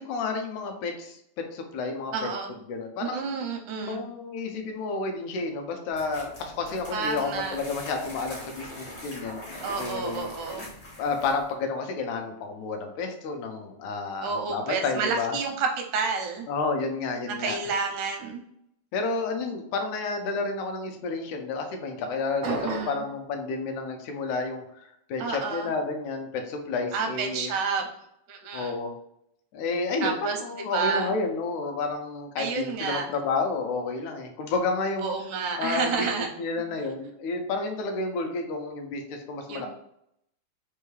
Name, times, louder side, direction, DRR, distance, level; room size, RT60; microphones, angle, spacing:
voice 1, 0.0-2.1 2.7-3.2 3.9-10.3 11.0-15.3 16.5-17.6 18.9-27.5 28.5-28.9 29.5-35.1 35.6-36.1 36.4-39.7, left 3 dB, 85° left, 4 dB, 2.0 m, -31 dB
voice 2, 2.1-2.5 3.0-4.0 6.9-7.6 9.6-10.7 14.2-16.5 17.3-18.4 22.4-23.0 25.2-25.7 26.9-27.8 28.3-28.7 30.0-31.1 32.4-33.1 35.0-36.3 39.5-39.7, right 5 dB, 90° right, 3 dB, 2.2 m, -30 dB
sound 1, 5.9-11.5, left 1 dB, 55° left, 0.5 m, -42 dB
sound 2, 22.4-23.1, right 2 dB, 75° right, 1.0 m, -32 dB
5.4 x 2.3 x 3.1 m, 0.77 s
omnidirectional pair, 3.4 m